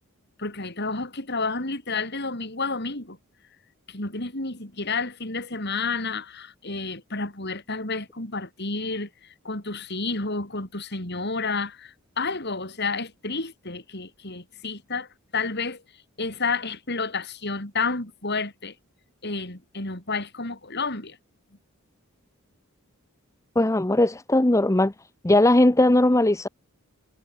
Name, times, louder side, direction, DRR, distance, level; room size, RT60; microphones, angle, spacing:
voice 1, 0.4-3.2 3.9-9.1 9.4-15.1 15.3-15.8 16.2-18.7 19.2-21.2, left 4 dB, 50° left, 5.1 m, -30 dB
voice 2, 23.6-24.9 25.2-26.5, left 1 dB, 15° left, 0.7 m, -19 dB
head